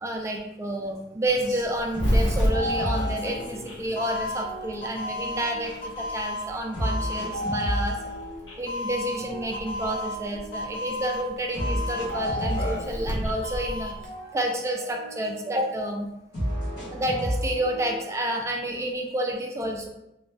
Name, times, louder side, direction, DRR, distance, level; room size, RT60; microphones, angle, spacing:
voice 1, 0.0-8.0 8.6-13.9 14.3-16.1 16.9-19.9, right 1 dB, 15° right, 1 dB, 0.4 m, -29 dB
Doorbell, 1.3-14.1, left 1 dB, 80° left, 0.7 m, -31 dB
sound 1, 1.3-1.4 1.9-4.0 4.3-6.2 6.7-8.7 9.2-10.9 11.5-13.7 14.0-15.7 16.3-18.3, equal, 65° left, 1.2 m, -33 dB
3.0 x 2.6 x 2.3 m, 0.87 s
head